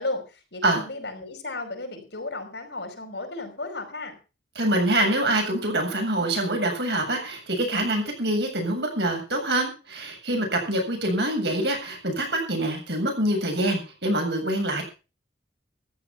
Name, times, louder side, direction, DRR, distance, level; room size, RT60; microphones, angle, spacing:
voice 1, 0.0-4.2, left 2 dB, 70° left, 6 dB, 5.3 m, -34 dB
voice 2, 4.6-14.8, right 1 dB, 65° right, 3 dB, 7.6 m, -25 dB
14.5 x 11.5 x 5.7 m, 0.34 s
head